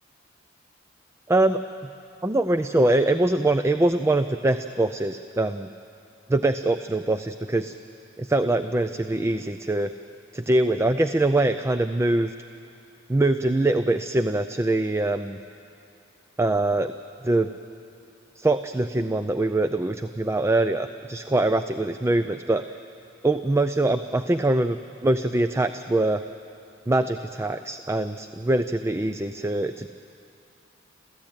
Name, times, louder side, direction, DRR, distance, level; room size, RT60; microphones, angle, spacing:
voice 1, 1.3-1.6 2.2-5.7 6.3-7.7 8.2-9.9 10.3-12.3 13.1-15.4 16.4-16.9 17.2-17.5 18.4-22.6 23.2-26.2 26.9-29.9, right 2 dB, 15° right, 10 dB, 0.4 m, -23 dB
28.5 x 14.5 x 9.0 m, 2.7 s
head